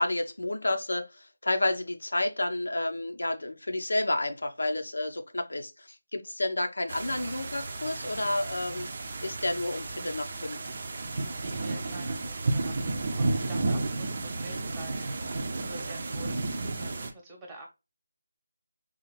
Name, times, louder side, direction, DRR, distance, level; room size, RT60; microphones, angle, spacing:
voice 1, 0.0-8.9 9.2-10.7 13.4-13.5, left 2 dB, 80° left, 0.7 m, -30 dB
sound 1, 6.9-17.1, right 2 dB, 40° right, 0.5 m, -32 dB
voice 2, 11.4-16.4 16.7-17.7, right 2 dB, 10° right, 0.9 m, -48 dB
3.8 x 2.5 x 3.0 m
figure-of-eight pair, 170°, 0 cm